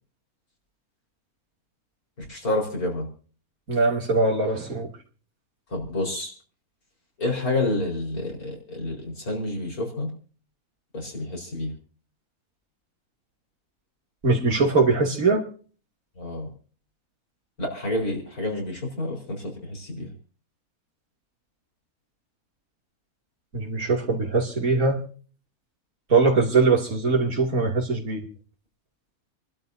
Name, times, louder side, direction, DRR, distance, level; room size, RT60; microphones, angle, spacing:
voice 1, 2.2-3.1 5.7-6.3 7.2-10.1 10.9-11.7 16.2-16.5 17.6-20.1, left 2 dB, 90° left, 1 dB, 5.0 m, -29 dB
voice 2, 3.7-4.9 14.2-15.4 23.5-25.0 26.1-28.3, right 3 dB, 70° right, 1 dB, 3.1 m, -21 dB
28.5 x 12.0 x 2.7 m, 0.41 s
omnidirectional pair, 1.5 m